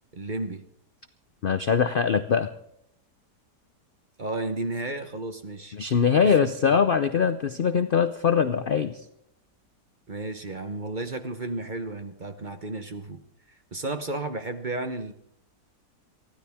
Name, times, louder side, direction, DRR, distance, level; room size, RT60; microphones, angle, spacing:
voice 1, 0.1-0.6 4.2-5.8 6.3-6.8 10.1-13.2 13.5-15.1, right 2 dB, 35° right, 8 dB, 0.9 m, -33 dB
voice 2, 1.4-2.5 5.7-9.0, left 6 dB, 80° left, 10 dB, 0.4 m, -22 dB
23.5 x 15.5 x 3.5 m, 0.76 s
omnidirectional pair, 1.8 m